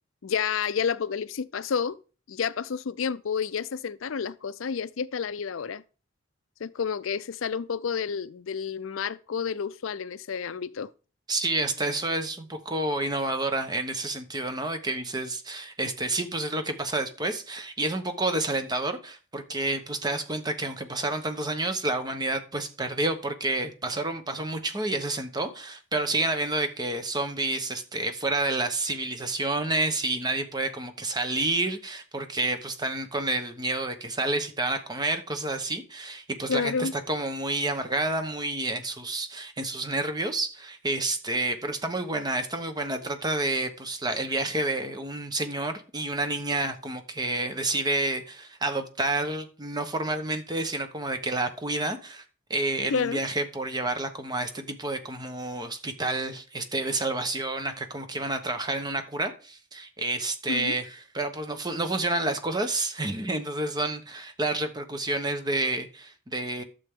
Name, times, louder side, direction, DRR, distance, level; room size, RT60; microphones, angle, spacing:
voice 1, 0.2-2.0 2.3-5.8 6.6-10.9 36.5-36.9 52.9-53.2 60.5-60.8, left 6 dB, 80° left, 0.5 m, -30 dB
voice 2, 11.3-52.2 52.5-66.6, right 2 dB, 20° right, 1.0 m, -29 dB
12.0 x 7.0 x 3.7 m
head